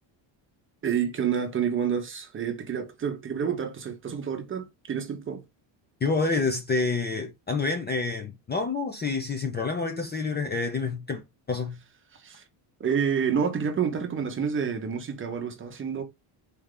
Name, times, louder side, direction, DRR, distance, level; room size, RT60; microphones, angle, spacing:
voice 1, 0.8-5.4 12.1-12.4 12.8-16.0, right 7 dB, 25° right, 0.7 m, -28 dB
voice 2, 6.0-11.2 11.5-11.8, left 4 dB, 20° left, 0.5 m, -28 dB
4.2 x 3.4 x 3.7 m
cardioid pair, 180°, 50 cm